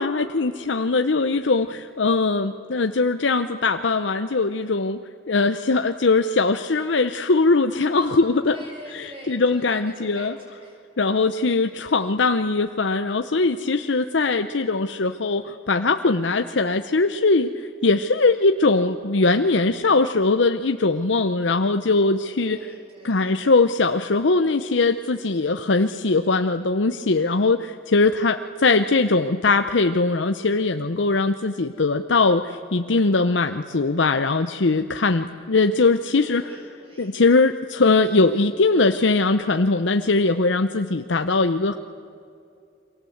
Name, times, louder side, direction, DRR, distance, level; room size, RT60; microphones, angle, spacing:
voice 1, 0.0-5.0 5.3-8.6 8.9-10.4 11.0-22.6 23.0-36.4 37.0-41.7, left 3 dB, 80° left, 8 dB, 0.8 m, -21 dB
voice 2, 8.0-10.8 22.3-23.3 36.2-37.1, right 1 dB, 30° right, 0 dB, 7.6 m, -44 dB
29.5 x 23.5 x 8.0 m, 2.6 s
head